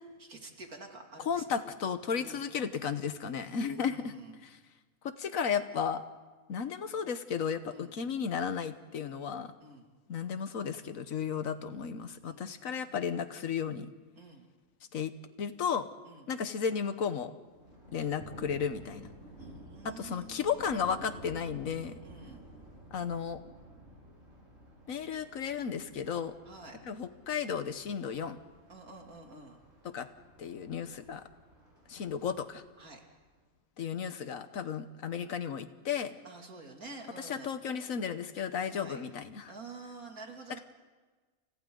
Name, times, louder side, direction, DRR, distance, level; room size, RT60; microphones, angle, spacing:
voice 1, 0.2-1.4 2.2-2.4 3.7-4.4 7.7-7.9 9.6-9.9 12.2-13.1 14.2-14.5 16.1-16.3 19.4-20.6 22.0-22.4 26.5-26.8 28.7-29.6 32.8-33.1 36.2-37.5 38.7-39.0 39.5-40.6, right 3 dB, 75° right, 2 dB, 3.2 m, -49 dB
voice 2, 1.3-4.1 4.4-4.6 5.0-6.0 6.5-9.5 10.1-13.9 14.9-15.9 16.3-17.3 17.9-19.1 19.8-22.0 22.9-23.4 24.9-26.3 26.8-28.4 29.8-30.1 30.4-31.2 31.9-32.6 33.8-36.1 37.2-39.5, left 7 dB, 70° left, 10 dB, 1.5 m, -34 dB
Thunder, 17.5-33.4, right 1 dB, 60° right, 5.8 m, -53 dB
30.0 x 30.0 x 3.9 m, 1.3 s
omnidirectional pair, 1.5 m